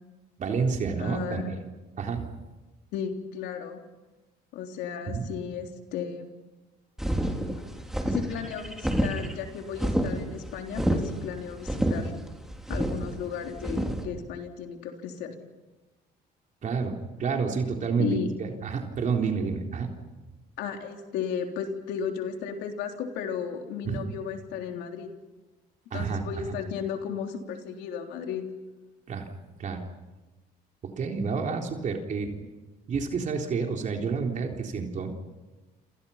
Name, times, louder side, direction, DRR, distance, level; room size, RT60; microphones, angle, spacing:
voice 1, 0.4-1.4 2.0-2.3 5.1-5.2 11.8-11.9 16.6-18.1 18.4-19.9 23.8-24.0 25.9-26.6 29.1-29.3 29.6-29.8 31.0-32.4 32.9-35.1, right 5 dB, 45° right, 2 dB, 3.8 m, -29 dB
voice 2, 1.0-1.6 2.9-3.8 4.5-6.3 8.1-12.1 12.7-15.3 18.0-18.3 20.6-25.1 25.9-28.5, left 7 dB, 90° left, 3 dB, 3.6 m, -34 dB
sound 1, 7.0-14.0, right 1 dB, 5° right, 3.6 m, -29 dB
29.0 x 27.5 x 5.8 m, 1.2 s
cardioid pair, 110°, 17 cm